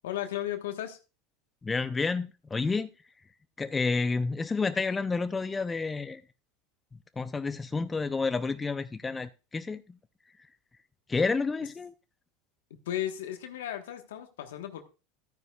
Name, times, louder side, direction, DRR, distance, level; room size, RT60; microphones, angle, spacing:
voice 1, 0.0-1.0 12.9-14.8, left 12 dB, 75° left, 1.2 m, -35 dB
voice 2, 1.6-2.9 3.6-6.2 7.2-9.8 11.1-11.9, left 4 dB, 20° left, 0.5 m, -30 dB
13.0 x 9.4 x 2.3 m
hypercardioid pair, 85°, 0 cm